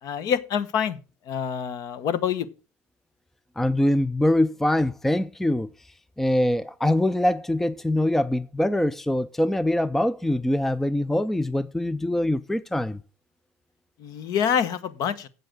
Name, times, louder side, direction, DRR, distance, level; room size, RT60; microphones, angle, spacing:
voice 1, 0.0-1.0 1.3-2.5 14.0-15.3, left 8 dB, 50° left, 1.1 m, -26 dB
voice 2, 3.6-5.7 6.2-13.0, left 1 dB, 5° left, 0.4 m, -23 dB
8.0 x 7.6 x 6.1 m
supercardioid pair, 100°, 8 cm